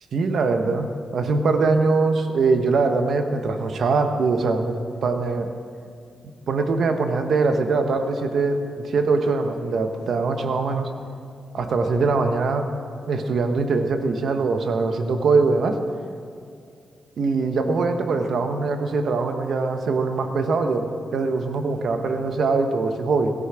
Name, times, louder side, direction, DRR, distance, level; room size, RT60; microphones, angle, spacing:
voice 1, 0.1-5.5 6.5-10.9 11.5-12.7 13.1-15.8 17.2-23.3, right 4 dB, 70° right, 6 dB, 1.3 m, -22 dB
17.0 x 14.0 x 5.0 m, 2.3 s
cardioid pair, 70°, 0 cm